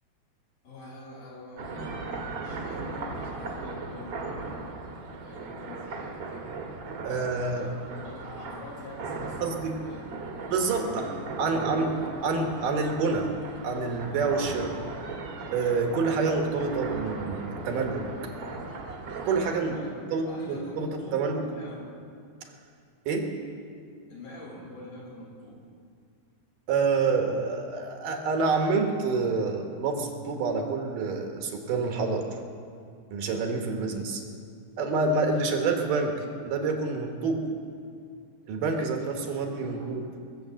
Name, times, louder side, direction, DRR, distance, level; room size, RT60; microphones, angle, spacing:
voice 1, 0.6-4.6 5.2-6.5 7.1-12.3 19.7-21.9 24.1-25.6 39.6-39.9, left 2 dB, 75° left, -4 dB, 4.6 m, -45 dB
sound 1, 1.6-19.5, right 3 dB, 50° right, 2.0 m, -38 dB
voice 2, 7.0-7.7 9.4-9.8 10.5-11.0 11.4-11.9 12.2-13.3 13.6-14.8 15.5-18.3 19.3-19.8 20.1-21.4 23.1-23.3 26.7-32.3 33.1-34.2 34.8-37.5 38.5-40.0, right 4 dB, 70° right, 3 dB, 2.8 m, -27 dB
21.5 x 7.3 x 7.5 m, 2.2 s
omnidirectional pair, 4.1 m